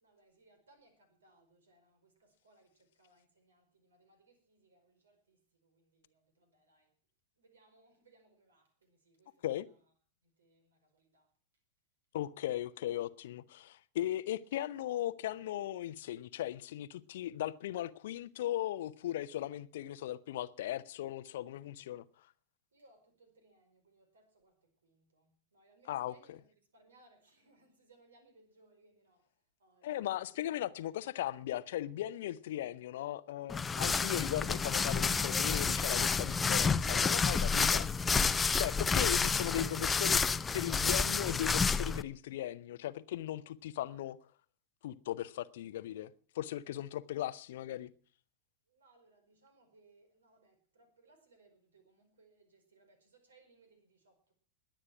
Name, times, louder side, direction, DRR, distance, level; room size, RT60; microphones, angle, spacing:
voice 1, 0.0-2.1 2.4-2.7 3.0-5.4 6.4-6.8 7.4-9.3 10.4-10.6 11.1-11.2 22.7-24.5 24.9-26.4 26.7-29.2 29.6-29.8 48.7-54.3, right 2 dB, 70° right, 4.8 m, -66 dB
voice 2, 12.1-22.0 25.8-26.4 29.8-37.9 38.6-44.2 44.8-47.9, left 13 dB, 55° left, 0.7 m, -38 dB
sound 1, 33.5-42.0, left 5 dB, 15° left, 0.6 m, -30 dB
21.0 x 8.9 x 6.0 m
figure-of-eight pair, 90°, 0 cm